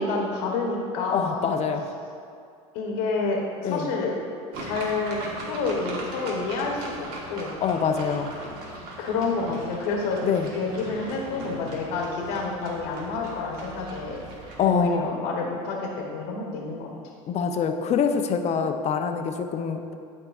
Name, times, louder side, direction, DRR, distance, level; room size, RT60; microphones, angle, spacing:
voice 1, 0.0-1.5 2.7-4.1 4.6-7.5 9.0-10.2 10.5-14.2 14.7-16.9, left 3 dB, 70° left, -1 dB, 1.1 m, -28 dB
voice 2, 1.1-1.9 3.6-3.9 7.6-8.4 10.2-10.5 14.6-15.1 17.3-19.8, left 6 dB, 40° left, 6 dB, 0.6 m, -25 dB
sound 1, 4.5-14.8, right 2 dB, 60° right, 1.4 m, -39 dB
11.5 x 4.6 x 2.4 m, 2.4 s
hypercardioid pair, 90°, 17 cm